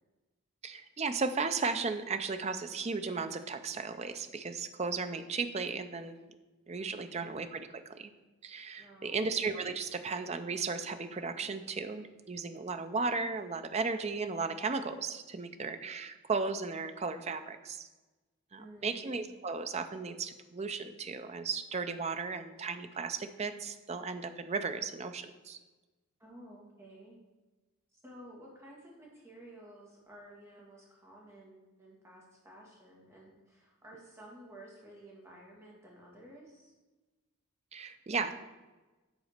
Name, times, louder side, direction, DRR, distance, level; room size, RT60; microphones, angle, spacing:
voice 1, 0.6-6.2 6.7-8.1 8.4-17.9 18.5-25.6 37.7-38.3, right 4 dB, 30° right, 9 dB, 0.5 m, -35 dB
voice 2, 6.7-7.3 8.8-9.3 18.6-19.2 26.2-27.2 27.9-36.7, right 1 dB, 15° right, -3 dB, 1.9 m, -53 dB
8.0 x 4.1 x 6.5 m, 1.2 s
head